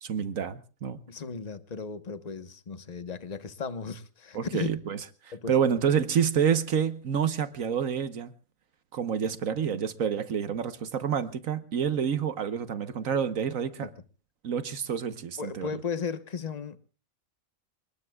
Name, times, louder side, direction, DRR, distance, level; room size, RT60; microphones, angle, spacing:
voice 1, 0.0-1.0 4.3-8.3 8.9-13.9 14.4-15.7, right 8 dB, 70° right, 1.4 m, -28 dB
voice 2, 1.1-4.7 5.3-5.5 13.8-13.9 15.4-16.8, left 5 dB, 30° left, 1.1 m, -35 dB
28.0 x 20.0 x 2.3 m
omnidirectional pair, 1.4 m